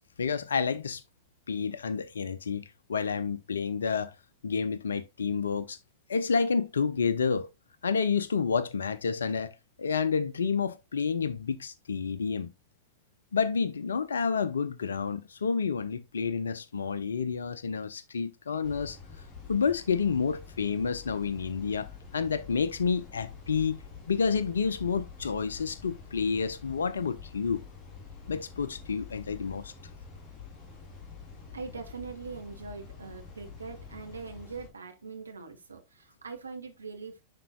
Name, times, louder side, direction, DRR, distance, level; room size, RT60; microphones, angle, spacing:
voice 1, 0.2-1.0 1.5-4.1 4.4-5.8 6.1-7.5 7.8-12.5 13.3-19.0 19.5-23.8 24.1-27.6 28.3-29.7, left 5 dB, 70° left, 0.5 m, -29 dB
sound 1, 18.6-34.7, left 5 dB, 30° left, 3.1 m, -47 dB
voice 2, 31.5-37.2, right 4 dB, 75° right, 1.1 m, -42 dB
11.0 x 4.4 x 2.3 m
figure-of-eight pair, 90°, 0 cm